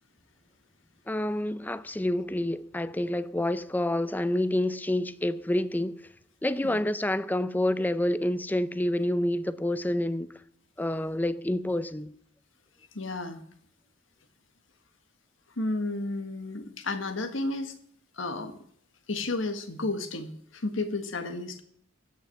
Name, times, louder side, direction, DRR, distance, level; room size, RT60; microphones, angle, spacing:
voice 1, 1.1-6.0 6.4-10.3 10.8-12.2, left 1 dB, 10° left, 0.5 m, -28 dB
voice 2, 12.9-13.4 15.6-17.7 18.2-18.5 19.1-21.6, left 2 dB, 75° left, 1.6 m, -32 dB
15.5 x 6.0 x 9.2 m
head